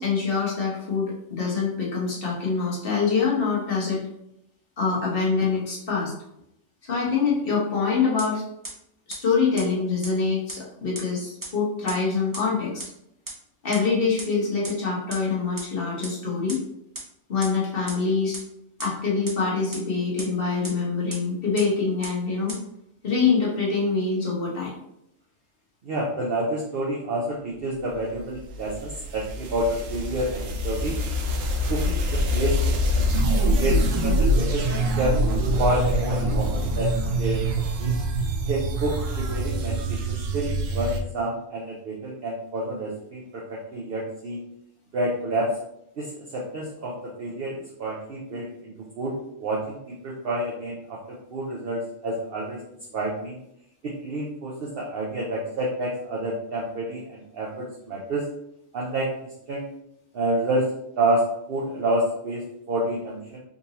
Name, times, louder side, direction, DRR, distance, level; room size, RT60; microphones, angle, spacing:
voice 1, 0.0-4.0 4.8-6.1 6.8-8.4 9.1-12.8 13.6-16.6 17.3-18.4 18.8-22.5 23.0-24.7, left 5 dB, 50° left, -4 dB, 1.2 m, -25 dB
sound 1, 8.2-8.3 8.6-8.7 9.1-9.2 9.6-9.7 10.0-10.1 10.5-10.6 10.9-11.0 11.4-11.5 11.9-12.0 12.3-12.4 12.8-12.9 13.3-13.4 13.7-13.8 14.2-14.3 14.6-14.7 15.1-15.2 15.6-15.7 16.0-16.1 16.5-16.6 16.9-17.0 17.4-17.5 17.9-18.0 18.3-18.4 18.8-18.9 19.3-19.4 19.7-19.8 20.2-20.3 20.6-20.7 21.1-21.2 21.6-21.7 22.0-22.1 22.5-22.6, right 2 dB, 20° right, 0.6 m, -34 dB
voice 2, 25.8-31.0 31.7-32.6 32.9-33.1 33.6-34.7 35.0-35.1 35.6-37.4 37.8-38.0 38.5-44.4 44.9-45.6 46.0-49.2 49.4-52.6 52.9-53.4 53.8-58.2 58.7-59.1 59.5-59.6 60.1-60.7 61.0-63.4, right 1 dB, 55° right, -4 dB, 0.7 m, -29 dB
sound 2, 28.1-41.0, equal, 85° right, 1.0 m, -25 dB
3.8 x 2.6 x 2.8 m, 0.78 s
omnidirectional pair, 1.3 m